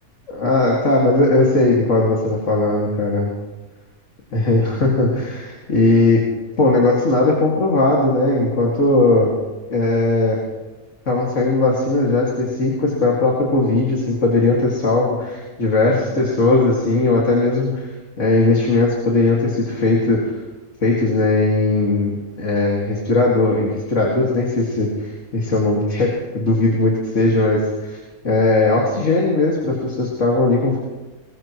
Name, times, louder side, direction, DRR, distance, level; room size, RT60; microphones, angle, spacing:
voice 1, 0.3-3.3 4.3-6.2 6.6-9.3 9.7-10.4 11.1-17.9 18.2-20.3 20.8-28.0 28.2-30.8, left 2 dB, 50° left, -3 dB, 2.6 m, -18 dB
21.5 x 21.0 x 3.1 m, 1.2 s
omnidirectional pair, 1.6 m